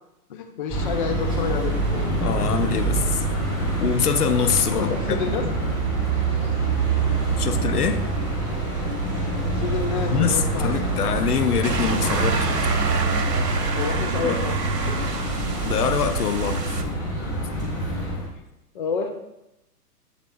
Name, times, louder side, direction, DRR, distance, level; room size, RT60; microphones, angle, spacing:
voice 1, 0.3-1.8 4.8-5.5 9.6-10.9 13.7-14.5 14.9-15.0 18.7-19.1, left 5 dB, 35° left, 5 dB, 0.4 m, -29 dB
sound 1, 0.7-18.3, right 2 dB, 5° left, 1.8 m, -26 dB
sound 2, 1.3-16.8, right 4 dB, 85° right, 0.8 m, -30 dB
voice 2, 2.1-3.2 3.8-5.4 7.4-8.0 10.1-12.4 14.2-14.4 15.6-16.6, left 7 dB, 70° left, 9 dB, 0.7 m, -24 dB
7.2 x 3.6 x 3.7 m, 0.88 s
figure-of-eight pair, 120°, 48 cm